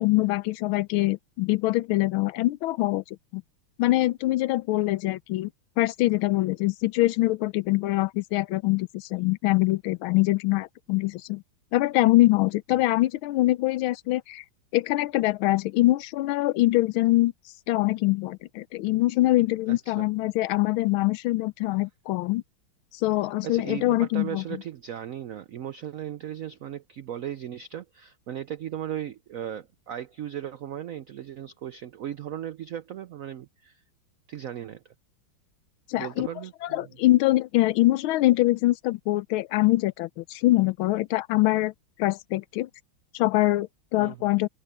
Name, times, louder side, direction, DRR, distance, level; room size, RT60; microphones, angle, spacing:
voice 1, 0.0-3.0 3.3-3.4 3.8-5.5 5.8-11.4 11.7-14.4 14.7-17.3 17.7-22.4 23.0-24.4 35.9-36.3 36.6-41.7 42.0-42.7 43.1-44.5, left 17 dB, 90° left, 1.5 m, -24 dB
voice 2, 19.7-20.1 23.4-33.8 34.3-34.8 36.0-36.9 44.0-44.3, right 10 dB, 85° right, 0.7 m, -37 dB
omnidirectional pair, 2.2 m